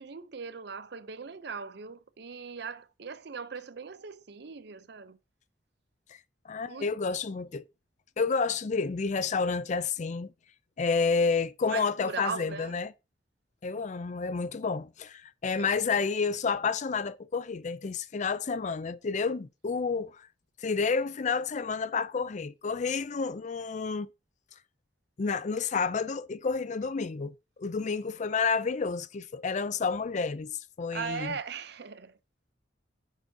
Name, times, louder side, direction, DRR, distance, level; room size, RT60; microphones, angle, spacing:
voice 1, 0.0-5.2 6.7-6.9 11.7-12.8 30.9-32.2, right 5 dB, 65° right, 0.7 m, -39 dB
voice 2, 6.4-7.6 8.2-10.3 10.8-12.9 13.6-20.3 20.6-24.1 25.2-31.4, left 5 dB, 40° left, 0.4 m, -30 dB
8.9 x 6.8 x 2.8 m
head